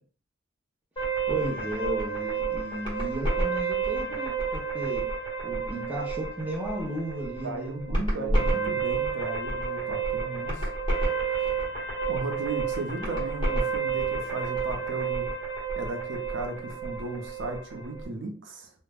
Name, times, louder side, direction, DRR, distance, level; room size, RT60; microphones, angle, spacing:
sound 1, 1.0-18.0, right 4 dB, 25° left, 1.0 m, -30 dB
voice 1, 1.3-5.0 5.4-8.8 13.0-13.1, right 1 dB, 10° right, -3 dB, 0.5 m, -35 dB
voice 2, 7.4-10.7 12.1-15.3 15.8-18.7, right 2 dB, 80° right, 3 dB, 0.5 m, -36 dB
2.3 x 2.0 x 3.2 m, 0.42 s
head